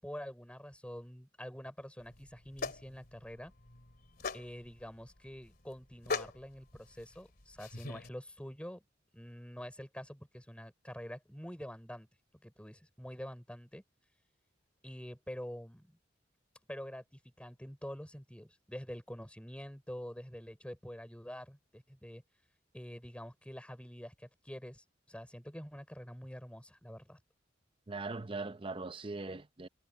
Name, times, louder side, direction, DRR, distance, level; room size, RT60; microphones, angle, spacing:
voice 1, 0.0-3.5 4.3-8.8 9.1-12.1 12.4-13.8 14.8-16.0 16.7-22.2 22.7-27.2, equal, 5° left, 5.0 m, -46 dB
sound 1, 2.0-8.1, left 4 dB, 55° left, 2.7 m, -42 dB
voice 2, 27.9-29.7, right 3 dB, 30° right, 0.7 m, -40 dB
head